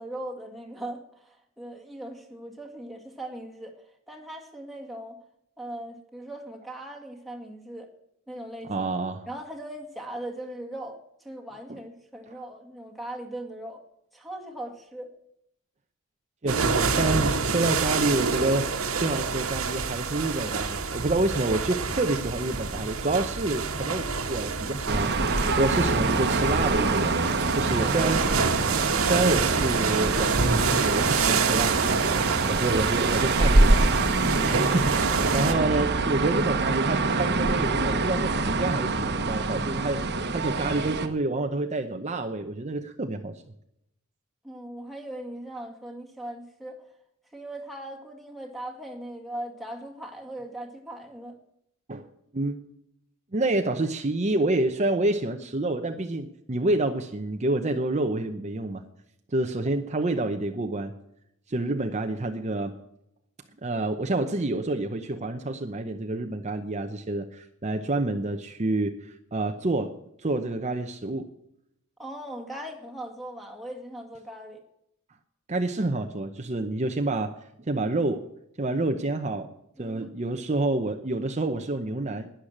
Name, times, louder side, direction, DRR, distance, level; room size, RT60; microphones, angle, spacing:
voice 1, 0.0-3.8 4.1-5.2 5.6-7.9 8.3-8.9 9.3-13.8 14.1-15.1 27.7-28.4 32.1-32.6 44.4-46.9 47.3-51.4 72.0-74.6 79.8-80.1, right 1 dB, ahead, 3 dB, 2.0 m, -39 dB
voice 2, 8.7-9.3 11.7-11.8 16.4-18.7 19.0-27.1 27.5-28.2 29.0-31.8 32.4-33.8 34.4-43.4 51.9-52.1 52.3-52.6 53.3-58.8 59.3-60.9 61.5-62.8 63.6-69.9 70.2-71.3 75.5-77.4 77.7-78.2 78.6-79.5 79.8-82.3, right 2 dB, 35° right, 5 dB, 0.8 m, -28 dB
sound 1, 16.5-35.5, right 5 dB, 80° right, 1.5 m, -28 dB
sound 2, 24.9-41.1, right 3 dB, 50° right, 1.2 m, -25 dB
11.5 x 10.5 x 7.4 m, 0.79 s
head